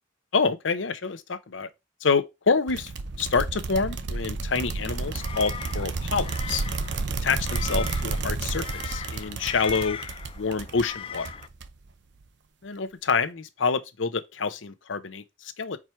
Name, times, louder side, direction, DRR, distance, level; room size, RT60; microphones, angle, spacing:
voice 1, 0.3-1.7 2.0-2.9 3.2-6.6 7.2-10.0 10.3-11.3 12.6-15.8, left 4 dB, 85° left, 0.8 m, -27 dB
sound 1, 2.7-11.9, right 3 dB, 65° right, 0.7 m, -31 dB
sound 2, 4.9-11.5, left 7 dB, 30° left, 0.3 m, -39 dB
4.7 x 4.5 x 4.6 m
head